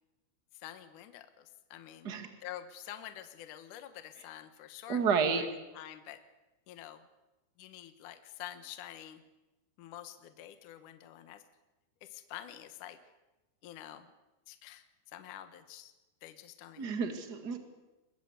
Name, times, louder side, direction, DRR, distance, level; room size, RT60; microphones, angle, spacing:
voice 1, 0.6-2.1 2.4-5.0 5.4-5.5 5.7-6.2 6.7-7.0 7.6-9.2 9.8-11.4 12.0-13.0 13.6-14.1 14.5-14.8 15.1-15.9 16.2-16.9, left 12 dB, 70° left, 9 dB, 1.9 m, -47 dB
voice 2, 4.9-5.4 16.8-17.6, right 6 dB, 45° right, 6 dB, 1.3 m, -30 dB
22.5 x 22.0 x 8.1 m, 1.0 s
omnidirectional pair, 5.5 m